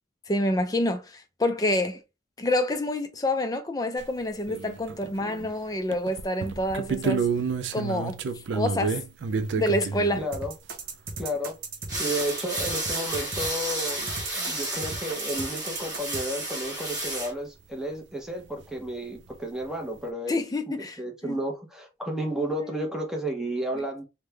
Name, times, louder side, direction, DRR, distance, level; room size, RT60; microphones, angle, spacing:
voice 1, 0.3-2.0 2.4-7.3 7.7-8.2 8.5-8.9 9.6-10.2 20.3-21.4 22.6-22.7, left 1 dB, 20° left, 0.4 m, -27 dB
sound 1, 4.0-4.1 4.5-5.5 5.9-10.2 12.9-13.0 13.1-13.2 14.3-14.4 14.9-15.0 18.6-18.7 18.9-19.3, right 5 dB, 80° right, 0.4 m, -30 dB
voice 2, 10.1-10.5 11.2-11.6 12.0-20.4 20.7-24.0, right 1 dB, 5° right, 0.8 m, -32 dB
sound 2, 10.3-16.2, right 4 dB, 50° right, 0.7 m, -36 dB
sound 3, 11.9-17.3, right 1 dB, 20° right, 1.2 m, -32 dB
3.2 x 2.2 x 3.3 m
head